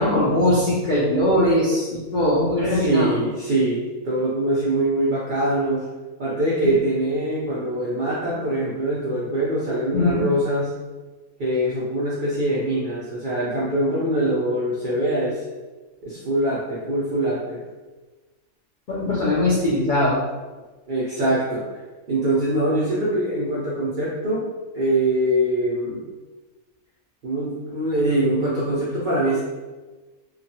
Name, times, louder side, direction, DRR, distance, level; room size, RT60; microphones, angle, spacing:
voice 1, 0.0-3.2 9.9-10.2 18.9-20.2, left 1 dB, 65° left, -7 dB, 0.4 m, -20 dB
voice 2, 2.5-5.9 6.2-10.7 11.4-15.4 16.0-17.6 20.9-21.6 22.1-24.5 24.7-26.0 27.2-29.4, right 1 dB, 85° right, -7 dB, 0.4 m, -23 dB
2.8 x 2.2 x 2.7 m, 1.2 s
omnidirectional pair, 1.5 m